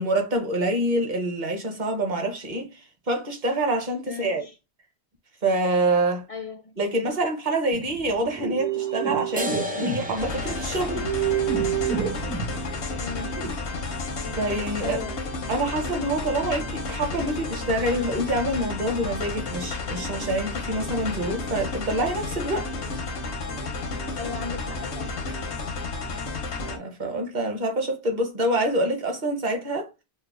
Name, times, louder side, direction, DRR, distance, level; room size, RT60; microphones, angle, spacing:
voice 1, 0.0-2.8 3.1-4.4 5.4-6.3 6.8-10.9 14.4-15.0 15.5-22.7 26.7-29.9, right 1 dB, 45° right, 0.9 m, -26 dB
voice 2, 4.1-4.5 6.3-6.7 13.0-13.3 14.8-15.2 24.2-25.1, left 5 dB, 50° left, 0.4 m, -36 dB
sound 1, 7.7-13.5, right 9 dB, 80° right, 2.0 m, -28 dB
sound 2, 9.4-16.3, left 1 dB, 15° right, 0.4 m, -38 dB
sound 3, 10.2-26.8, left 3 dB, 90° left, 1.0 m, -32 dB
5.2 x 2.1 x 2.4 m
omnidirectional pair, 1.1 m